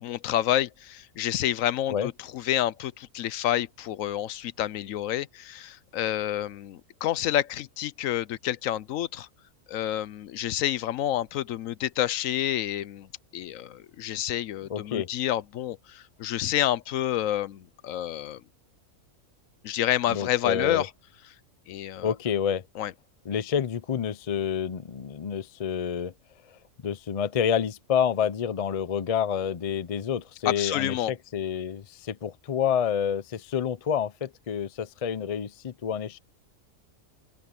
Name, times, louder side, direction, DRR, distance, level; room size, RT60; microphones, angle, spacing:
voice 1, 0.0-9.3 9.7-13.1 13.3-18.4 19.6-20.9 21.7-22.1 22.8-22.9 30.5-31.1, left 12 dB, 75° left, 1.0 m, -29 dB
voice 2, 14.7-15.1 20.1-20.9 22.0-22.6 23.3-26.1 26.5-36.2, left 8 dB, 45° left, 0.5 m, -28 dB
open air
omnidirectional pair, 1.4 m